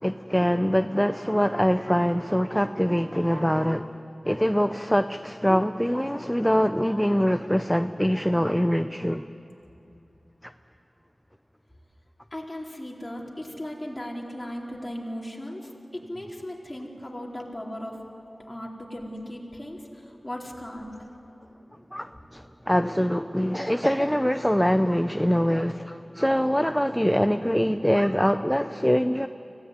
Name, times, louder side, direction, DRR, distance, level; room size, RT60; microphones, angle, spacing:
voice 1, 0.0-9.3 10.4-10.5 21.9-29.3, equal, 5° left, 10 dB, 0.6 m, -24 dB
voice 2, 12.3-18.0 18.5-20.9, left 1 dB, 25° left, -2 dB, 4.3 m, -37 dB
25.5 x 17.5 x 9.7 m, 3.0 s
wide cardioid pair, 50°, 0 cm